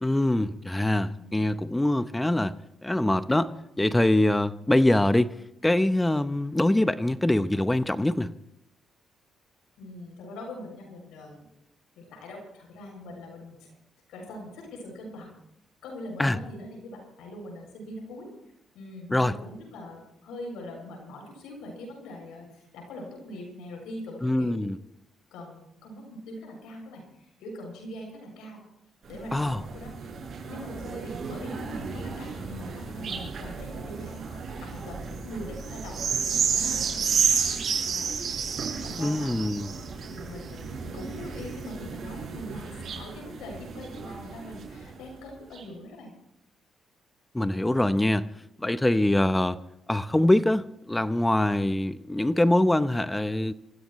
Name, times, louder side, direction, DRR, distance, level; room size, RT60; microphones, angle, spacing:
voice 1, 0.0-2.6 2.8-5.3 5.6-8.3 16.2-16.4 19.1-19.3 24.2-24.8 29.3-29.6 39.0-39.7 47.3-48.3 48.6-49.6 49.9-53.5, left 1 dB, 10° left, 12 dB, 0.8 m, -24 dB
voice 2, 1.2-1.5 9.8-11.5 12.0-13.7 14.1-15.3 15.8-18.3 18.7-24.6 25.3-28.6 29.1-30.1 30.5-39.3 40.1-46.1, left 1 dB, 90° left, 1 dB, 7.2 m, -42 dB
sound 1, 29.1-44.9 45.5-45.6, right 6 dB, 55° right, 7.5 m, -32 dB
27.0 x 15.5 x 3.2 m, 0.79 s
cardioid pair, 90°, 0 cm